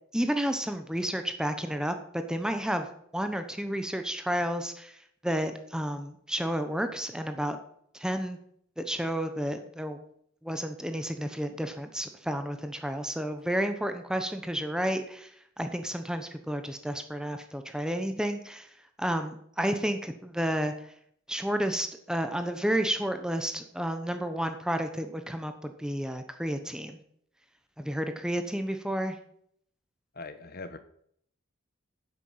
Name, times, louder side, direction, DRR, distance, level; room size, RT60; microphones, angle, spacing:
voice 1, 0.1-2.9 3.1-7.6 7.9-8.4 8.8-10.0 10.4-18.7 19.0-20.7 21.3-27.0 27.8-29.2, equal, 5° right, 7 dB, 0.9 m, -31 dB
voice 2, 30.1-30.8, left 3 dB, 45° left, 11 dB, 1.1 m, -41 dB
9.7 x 8.7 x 7.8 m, 0.69 s
head